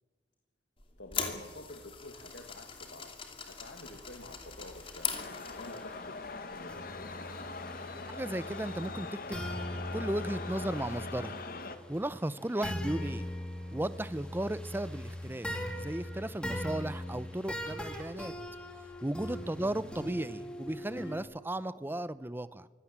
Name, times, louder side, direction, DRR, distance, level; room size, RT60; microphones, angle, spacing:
sound 1, 0.8-5.9, left 6 dB, 30° left, 2.7 m, -40 dB
voice 1, 1.0-3.1 3.5-5.1 5.6-6.2 6.5-6.9 19.2-19.4, left 2 dB, 80° left, 4 dB, 1.9 m, -48 dB
sound 2, 4.9-21.2, equal, 5° left, 2.6 m, -41 dB
sound 3, 5.1-11.8, left 3 dB, 55° left, 1.4 m, -42 dB
voice 2, 8.1-9.5 9.9-11.4 11.9-13.3 13.7-15.5 15.7-18.3 19.0-22.7, right 1 dB, 10° right, 16 dB, 0.6 m, -35 dB
24.5 x 17.0 x 7.4 m, 1.5 s
head